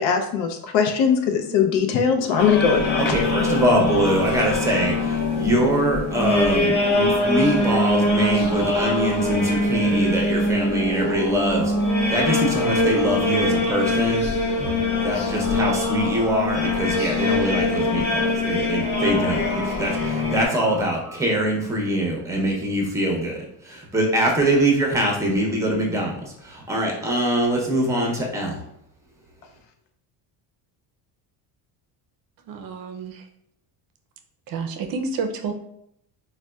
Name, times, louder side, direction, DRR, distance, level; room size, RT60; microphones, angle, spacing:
voice 1, 0.0-3.2, left 6 dB, 80° left, 5 dB, 0.6 m, -20 dB
sound 1, 1.3-21.2, left 2 dB, 40° left, 0.4 m, -34 dB
sound 2, 2.4-20.5, left 2 dB, 55° left, 1.1 m, -23 dB
voice 2, 3.1-11.7 12.1-14.3 15.0-19.4 19.8-23.4 23.7-26.2 26.5-28.6, right 1 dB, 5° right, -1 dB, 0.6 m, -23 dB
voice 3, 32.5-33.2 34.5-35.5, right 4 dB, 50° right, 5 dB, 0.5 m, -29 dB
4.0 x 2.2 x 2.3 m, 0.75 s
cardioid pair, 125°, 45 cm